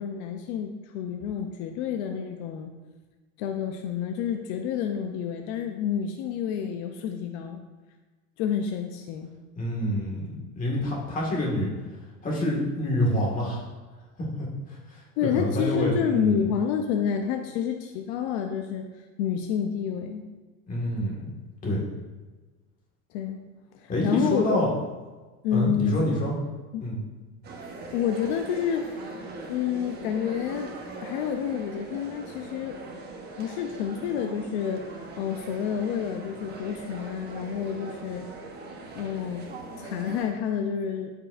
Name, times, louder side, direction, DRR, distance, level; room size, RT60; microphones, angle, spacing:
voice 1, 0.0-2.7 3.4-7.6 8.4-9.3 15.2-18.9 19.2-20.2 23.1-23.4 23.7-24.6 25.4-26.2 26.7-26.9 27.9-29.1 29.5-30.7 31.0-32.8 33.4-38.3 38.9-39.5 39.8-41.1, left 8 dB, 70° left, 4 dB, 0.7 m, -29 dB
voice 2, 9.6-11.7 12.2-13.6 14.4-16.5 20.7-21.2 21.6-21.9 23.9-24.7 25.5-26.4 26.8-27.0, left 1 dB, 25° left, -3 dB, 1.8 m, -27 dB
sound 1, 27.4-40.3, right 3 dB, 30° right, 1.1 m, -41 dB
12.5 x 5.4 x 2.6 m, 1.3 s
cardioid pair, 160°, 35 cm